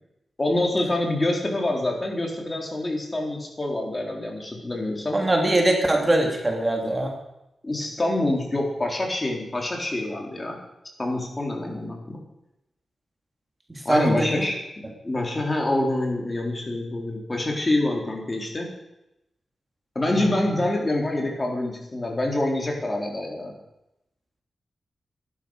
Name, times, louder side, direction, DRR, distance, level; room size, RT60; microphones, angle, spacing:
voice 1, 0.4-5.2 7.6-10.6 11.0-12.2 13.8-18.7 20.0-23.5, left 1 dB, 30° left, 1 dB, 4.0 m, -26 dB
voice 2, 5.1-7.1 13.7-14.5 20.2-20.3, right 1 dB, 25° right, 2 dB, 3.1 m, -22 dB
15.0 x 12.0 x 6.6 m, 0.88 s
wide cardioid pair, 85°, 0 cm